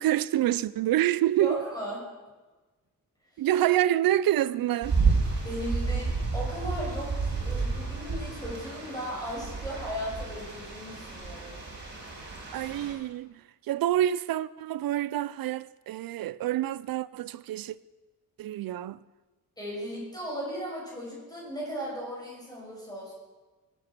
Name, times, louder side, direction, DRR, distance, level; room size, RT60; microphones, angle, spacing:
voice 1, 0.0-1.6 3.4-5.0 12.5-13.4 13.7-17.8 18.4-19.0, right 13 dB, 80° right, 0.6 m, -27 dB
voice 2, 1.4-2.0 5.4-11.5 19.6-23.1, equal, 10° left, 6.4 m, -36 dB
sound 1, 4.8-12.9, right 4 dB, 30° right, 4.7 m, -31 dB
24.5 x 9.1 x 6.0 m
wide cardioid pair, 170°, 34 cm